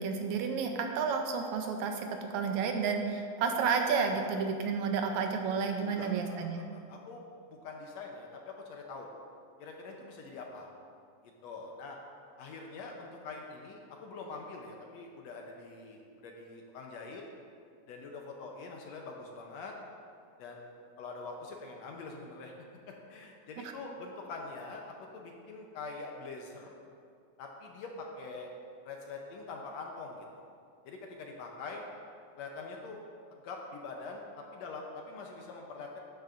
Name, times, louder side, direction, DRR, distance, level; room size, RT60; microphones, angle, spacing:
voice 1, 0.0-6.6, right 5 dB, 80° right, 4 dB, 1.9 m, -31 dB
voice 2, 5.8-9.1 9.6-10.7 11.4-12.0 12.4-17.2 17.9-19.7 20.4-24.9 25.1-26.8 27.4-28.5 28.8-30.4 30.9-31.8 32.4-33.0 33.3-36.0, left 3 dB, 70° left, 1 dB, 1.8 m, -44 dB
12.5 x 9.4 x 2.6 m, 2.3 s
omnidirectional pair, 3.5 m